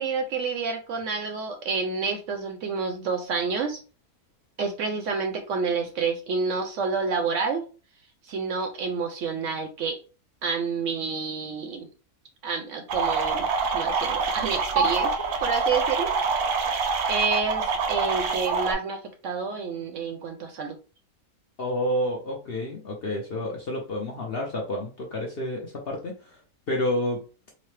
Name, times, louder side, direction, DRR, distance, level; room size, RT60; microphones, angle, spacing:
voice 1, 0.0-3.8 4.6-7.6 8.3-10.0 10.4-11.9 12.4-13.5 13.7-16.1 17.1-20.8, right 5 dB, 65° right, 5 dB, 0.8 m, -29 dB
sound 1, 12.9-18.7, right 4 dB, 85° right, 1.1 m, -25 dB
voice 2, 21.6-26.3 26.7-27.2, left 1 dB, 55° left, 0 dB, 0.7 m, -29 dB
4.0 x 2.1 x 3.2 m, 0.34 s
omnidirectional pair, 1.6 m